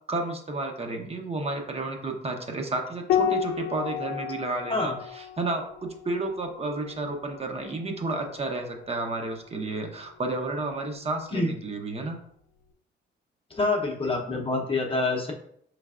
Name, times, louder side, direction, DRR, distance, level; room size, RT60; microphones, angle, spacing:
voice 1, 0.1-12.2, right 2 dB, 30° right, 3 dB, 0.7 m, -31 dB
Piano, 3.1-7.9 9.6-10.4, left 10 dB, 80° left, 0.5 m, -32 dB
voice 2, 13.5-15.3, left 2 dB, 30° left, 1 dB, 0.8 m, -26 dB
4.5 x 3.3 x 2.4 m, 0.67 s
cardioid pair, 90°, 20 cm